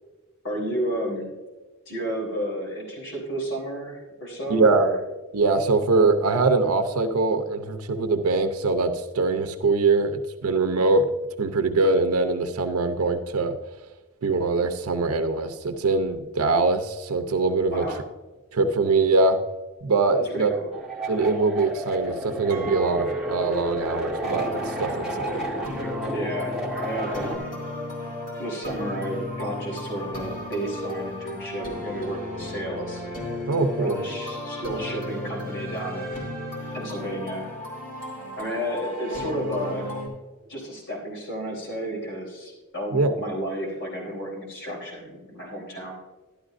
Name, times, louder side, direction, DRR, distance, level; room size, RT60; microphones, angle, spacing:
voice 1, 0.4-1.3 1.9-4.9 17.7-18.0 20.2-20.7 26.1-27.6 28.4-33.0 33.4-33.5 33.8-36.3 36.7-37.5 38.4-39.9 40.5-45.9, right 1 dB, 60° left, -2 dB, 3.5 m, -32 dB
voice 2, 4.5-4.9 5.3-11.1 11.4-13.6 14.2-18.0 18.5-19.4 19.8-20.5 21.1-25.5 33.5-34.0 42.9-43.1, right 3 dB, 85° right, 7 dB, 0.7 m, -23 dB
sound 1, 20.7-27.4, equal, 5° right, 1.2 m, -32 dB
Chink clink, 22.5-27.7, right 4 dB, 40° right, 0.8 m, -37 dB
sound 2, 24.2-40.1, left 1 dB, 40° left, 3.0 m, -34 dB
12.0 x 12.0 x 2.5 m, 1.2 s
head